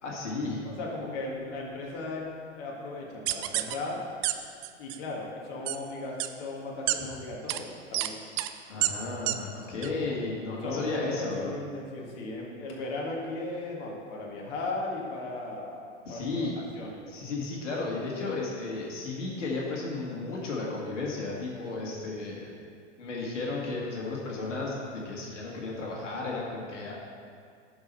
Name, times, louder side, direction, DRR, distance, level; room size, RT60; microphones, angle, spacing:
voice 1, 0.0-0.7 8.7-11.5 16.1-16.5 17.1-22.5 23.0-26.9, left 3 dB, 80° left, -3 dB, 2.0 m, -33 dB
voice 2, 0.7-2.3 2.6-4.0 4.8-8.2 10.6-16.5 16.8-17.0, left 2 dB, 50° left, -2 dB, 1.9 m, -37 dB
sound 1, 3.3-3.7 4.2-4.3 4.6-5.0 5.7-5.8 6.2-6.3 6.9-7.0 7.5-7.6 7.9-8.1 8.4-8.5 8.8-8.9 9.3-9.4 9.8-9.9, right 17 dB, 35° right, 0.5 m, -28 dB
10.5 x 4.9 x 5.5 m, 2.2 s
hypercardioid pair, 105°, 36 cm